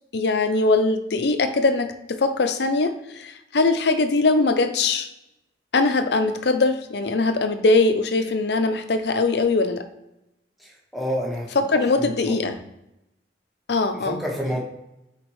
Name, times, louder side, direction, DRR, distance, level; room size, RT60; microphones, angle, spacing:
voice 1, 0.1-5.1 5.7-9.8 11.6-12.6 13.7-14.2, left 3 dB, 65° left, 9 dB, 0.6 m, -21 dB
voice 2, 10.6-11.5 11.7-12.4 13.9-14.6, equal, ahead, -4 dB, 1.4 m, -29 dB
8.3 x 4.3 x 3.1 m, 0.90 s
head